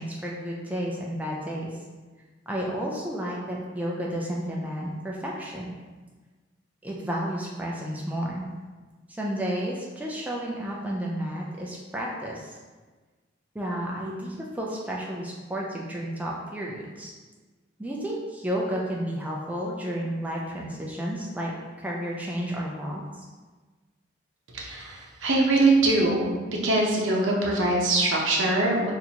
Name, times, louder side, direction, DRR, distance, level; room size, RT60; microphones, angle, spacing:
voice 1, 0.0-1.7 2.5-5.8 6.8-8.5 9.1-12.5 13.5-17.1 17.8-21.5 21.8-23.3, equal, 10° right, -3 dB, 0.3 m, -32 dB
voice 2, 24.5-26.3 26.6-28.9, right 2 dB, 85° right, -2 dB, 0.7 m, -22 dB
4.2 x 2.6 x 2.8 m, 1.3 s
head